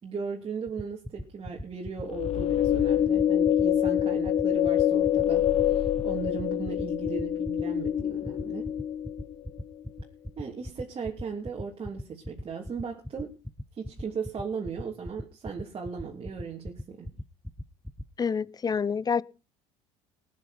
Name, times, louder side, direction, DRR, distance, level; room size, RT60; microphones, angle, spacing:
voice 1, 0.0-8.7 10.4-13.3 13.7-17.1, right 5 dB, 35° right, 3.0 m, -37 dB
sound 1, 0.7-18.0, equal, 5° left, 0.9 m, -37 dB
sound 2, 2.1-9.4, left 10 dB, 45° left, 1.1 m, -26 dB
voice 2, 18.2-19.2, left 6 dB, 25° left, 0.7 m, -27 dB
20.0 x 9.5 x 4.3 m
hypercardioid pair, 80°, 15 cm